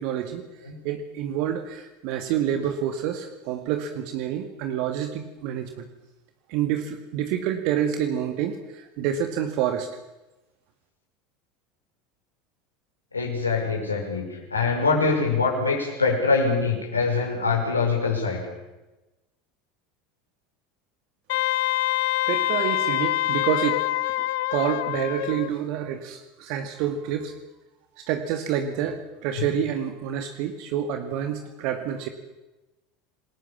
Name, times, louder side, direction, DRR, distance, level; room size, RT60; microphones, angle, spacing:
voice 1, 0.0-5.9 6.5-9.9 22.3-23.9 24.2-24.3 24.5-27.3 28.0-32.1, right 9 dB, 55° right, 7 dB, 2.0 m, -28 dB
voice 2, 13.1-18.4 29.4-29.5, left 4 dB, 90° left, 0 dB, 6.1 m, -24 dB
Wind instrument woodwind instrument, 21.3-25.5, left 17 dB, 65° left, 0.9 m, -25 dB
28.0 x 20.5 x 7.3 m, 1.0 s
figure-of-eight pair, 75°, 0 cm